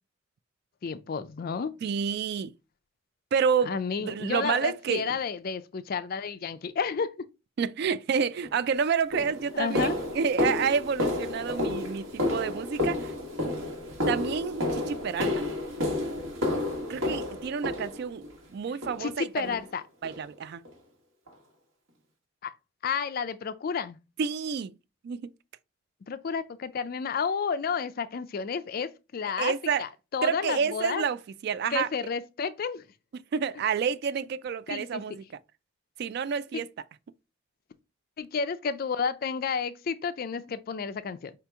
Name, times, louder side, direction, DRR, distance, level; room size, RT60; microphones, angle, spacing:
voice 1, 0.8-1.7 3.6-7.1 9.5-9.9 19.0-19.8 22.4-22.5 22.8-24.0 26.1-29.5 29.8-31.0 31.7-32.8 34.7-35.0 36.5-36.6 38.2-41.3, left 6 dB, 45° left, 0.4 m, -31 dB
voice 2, 1.8-2.5 3.3-3.8 4.0-5.0 7.6-13.1 14.1-15.5 16.9-18.2 18.5-19.6 20.0-20.6 24.2-24.7 25.0-25.3 29.4-29.9 30.2-31.9 33.1-35.2 36.0-36.7, right 6 dB, 50° right, 0.3 m, -29 dB
sound 1, 8.4-8.6 9.1-18.3 18.8-19.2 19.4-19.6 20.0-20.2 20.6-20.7 21.3-21.4, left 2 dB, 90° right, 1.6 m, -31 dB
4.9 x 2.9 x 3.4 m
head